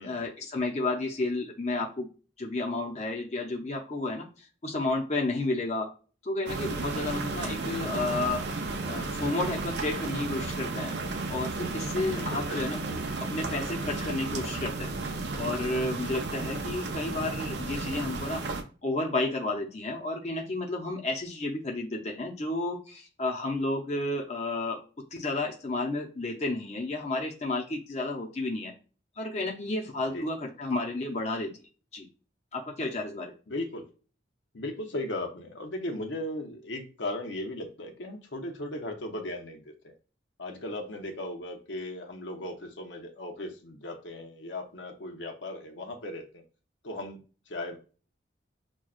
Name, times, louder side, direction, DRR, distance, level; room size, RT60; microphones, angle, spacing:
voice 1, 0.0-2.1 2.4-4.3 4.6-5.9 6.2-8.4 8.9-10.9 11.3-13.0 13.3-14.9 15.4-18.4 18.8-24.8 25.1-28.7 29.2-31.5 31.9-32.1 32.5-33.3, left 2 dB, 40° left, 0 dB, 0.6 m, -31 dB
sound 1, 6.5-18.6, right 3 dB, 70° right, 0.6 m, -33 dB
voice 2, 12.1-12.7 16.0-16.3 30.1-30.3 33.5-33.9 34.5-39.9 40.4-46.4 46.8-47.2 47.5-47.8, left 1 dB, 90° left, 3 dB, 0.8 m, -37 dB
6.2 x 2.3 x 2.4 m, 0.36 s
head